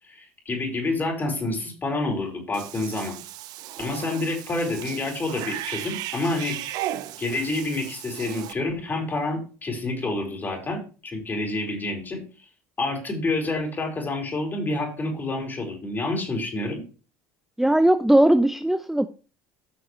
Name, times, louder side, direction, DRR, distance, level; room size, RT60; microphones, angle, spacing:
voice 1, 0.0-3.2 3.8-6.6 7.2-12.5 12.8-16.8, left 2 dB, 25° left, 1 dB, 4.5 m, -28 dB
Cat / Bathtub (filling or washing), 2.5-8.5, right 13 dB, 65° right, 0.9 m, -36 dB
voice 2, 17.6-19.1, right 1 dB, 5° right, 10 dB, 0.6 m, -18 dB
14.0 x 6.4 x 3.2 m, 0.35 s
supercardioid pair, 90°, 7 cm